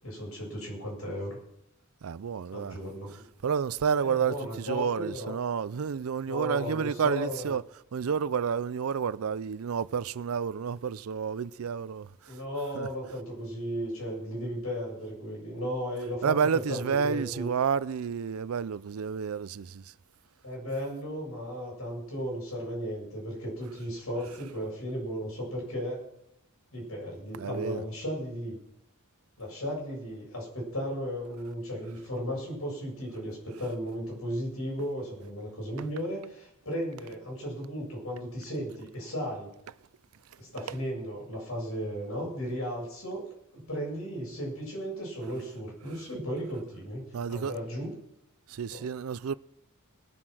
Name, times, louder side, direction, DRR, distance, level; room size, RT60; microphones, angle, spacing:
voice 1, 0.0-1.4 2.5-3.2 4.0-5.3 6.3-7.5 12.3-17.5 20.4-26.0 26.7-28.6 29.4-39.5 40.4-43.3 43.5-47.9 48.7-48.8, equal, 85° left, 7.6 m, -35 dB
voice 2, 2.0-2.8 3.4-7.6 7.9-12.1 12.7-12.9 16.2-19.8 27.4-27.8 47.1-47.5 48.5-49.3, right 6 dB, 85° right, 0.5 m, -30 dB
20.0 x 7.6 x 6.2 m
head